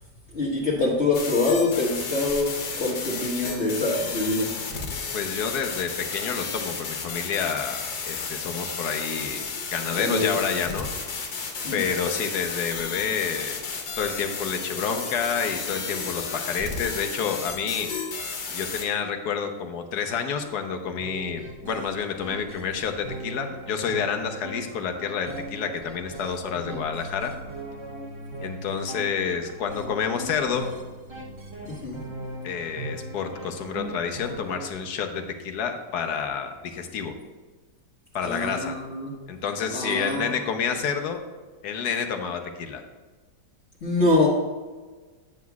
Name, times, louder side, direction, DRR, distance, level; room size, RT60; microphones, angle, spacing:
voice 1, 0.3-4.6 9.9-10.3 11.6-11.8 26.6-26.8 31.6-32.0 38.2-39.1 39.7-40.5 43.8-44.3, left 2 dB, 40° left, -6 dB, 1.4 m, -25 dB
sound 1, 1.1-18.8, left 5 dB, 80° left, 1.7 m, -33 dB
voice 2, 5.1-11.2 11.7-13.6 14.0-17.9 18.5-27.3 28.4-30.7 32.4-37.1 38.1-38.8 39.3-41.2 41.6-42.8, left 6 dB, 65° left, 6 dB, 1.2 m, -29 dB
sound 2, 21.0-34.7, right 2 dB, 30° right, 0.5 m, -39 dB
9.5 x 8.3 x 2.3 m, 1.3 s
omnidirectional pair, 1.9 m